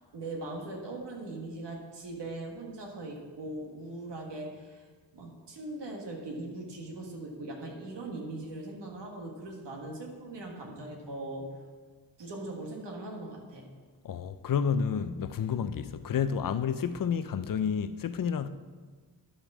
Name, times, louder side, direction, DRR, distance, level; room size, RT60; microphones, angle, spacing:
voice 1, 0.1-4.9 5.1-11.5 12.2-13.7, right 2 dB, 75° right, 1.6 m, -40 dB
voice 2, 14.0-18.5, left 7 dB, 50° left, 0.5 m, -30 dB
11.0 x 5.1 x 6.1 m
wide cardioid pair, 145°, 42 cm